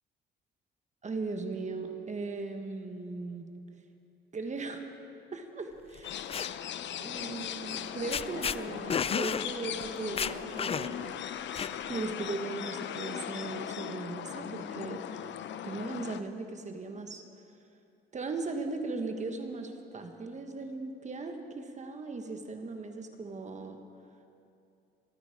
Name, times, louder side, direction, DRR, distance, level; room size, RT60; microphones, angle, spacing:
voice 1, 1.0-3.4 4.3-4.8 5.3-6.2 7.0-11.2 11.9-15.0 15.6-17.2 18.1-23.8, right 3 dB, 35° right, 5 dB, 1.5 m, -38 dB
sound 1, 6.0-16.2, left 9 dB, 65° left, 0.7 m, -39 dB
sound 2, 6.0-6.5 7.7-7.8 8.1-8.6 8.9-9.5 9.8-9.9 10.2-11.1 11.5-12.0, left 7 dB, 30° left, 0.4 m, -31 dB
25.5 x 9.2 x 5.0 m, 2.7 s
cardioid pair, 90°, 20 cm